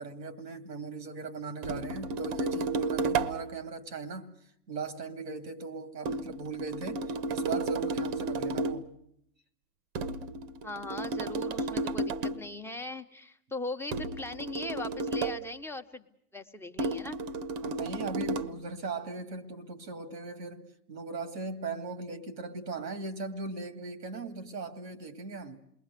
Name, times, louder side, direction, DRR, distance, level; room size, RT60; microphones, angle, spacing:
voice 1, 0.0-4.3 4.7-9.0 17.6-25.6, right 4 dB, 90° right, 2.6 m, -39 dB
sound 1, 1.6-3.5 6.1-8.9 9.9-12.5 13.9-15.5 16.8-18.6, right 3 dB, 50° right, 1.3 m, -32 dB
voice 2, 10.6-16.1 16.3-17.2, left 2 dB, 5° left, 1.2 m, -39 dB
28.0 x 21.0 x 6.8 m
hypercardioid pair, 100°, 48 cm